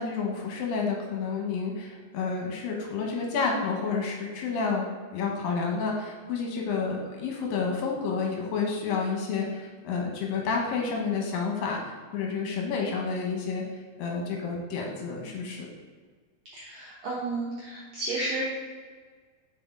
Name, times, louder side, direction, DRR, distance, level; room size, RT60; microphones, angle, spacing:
voice 1, 0.0-13.6 14.0-15.7, left 5 dB, 75° left, 0 dB, 2.6 m, -30 dB
voice 2, 16.5-18.4, right 2 dB, 75° right, -6 dB, 1.5 m, -32 dB
6.1 x 5.2 x 3.6 m, 1.5 s
omnidirectional pair, 4.3 m